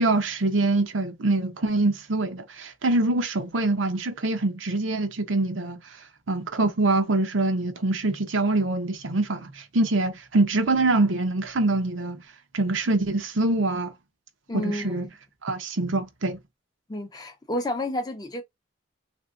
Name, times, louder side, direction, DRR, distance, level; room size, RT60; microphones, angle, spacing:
voice 1, 0.0-5.8 6.3-12.2 12.5-13.9 14.5-15.1 15.4-16.4, right 2 dB, 75° right, 0.8 m, -24 dB
voice 2, 14.5-15.1 16.9-18.4, left 1 dB, 20° left, 0.5 m, -30 dB
3.4 x 2.6 x 2.4 m
head